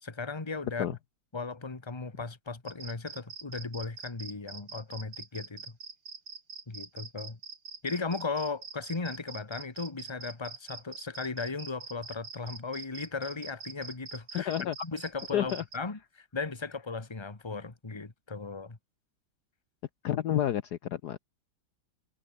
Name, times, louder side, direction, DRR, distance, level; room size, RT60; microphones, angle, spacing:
voice 1, 0.0-0.9 1.3-5.8 6.7-7.4 7.8-14.5 14.8-18.8, left 4 dB, 15° left, 1.6 m, -37 dB
sound 1, 2.7-15.8, right 5 dB, 55° right, 3.2 m, -44 dB
voice 2, 14.3-14.7 15.3-15.6 20.0-21.2, left 11 dB, 65° left, 1.3 m, -29 dB
omnidirectional pair, 2.0 m